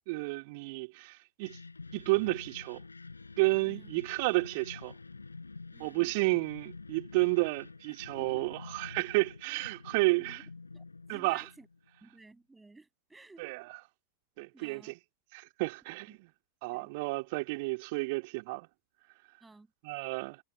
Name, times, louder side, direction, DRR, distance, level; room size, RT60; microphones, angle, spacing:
voice 1, 0.1-1.6 1.9-2.8 3.4-4.9 5.8-10.4 11.1-11.4 13.4-13.6 14.4-15.0 15.3-16.2 16.6-18.7 19.8-20.4, right 26 dB, 50° right, 2.3 m, -31 dB
sound 1, 1.4-12.0, left 3 dB, 80° left, 6.9 m, -48 dB
voice 2, 3.6-3.9 5.7-6.1 8.1-8.5 10.1-10.4 10.7-11.7 12.0-13.5 14.5-14.9 16.1-16.2 16.7-16.9 19.4-19.7, right 3 dB, 10° right, 7.2 m, -55 dB
figure-of-eight pair, 90°, 0 cm